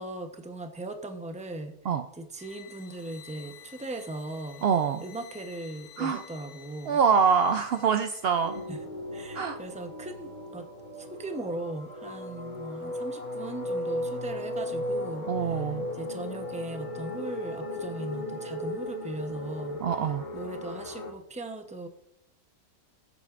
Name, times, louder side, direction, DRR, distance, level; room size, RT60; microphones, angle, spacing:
voice 1, 0.0-4.6 5.0-7.0 8.7-8.8 9.1-10.7 11.0-19.8 20.3-21.9, right 2 dB, 5° right, 5 dB, 0.5 m, -39 dB
sound 1, 2.4-8.7, left 11 dB, 80° left, 1.2 m, -52 dB
voice 2, 4.6-5.0 6.0-6.2 6.9-8.6 9.3-9.6 15.3-15.9 19.8-20.2, right 6 dB, 90° right, 8 dB, 0.5 m, -25 dB
sound 2, 8.4-21.1, left 1 dB, 50° left, 2.2 m, -36 dB
20.0 x 7.6 x 2.5 m, 0.81 s
omnidirectional pair, 1.6 m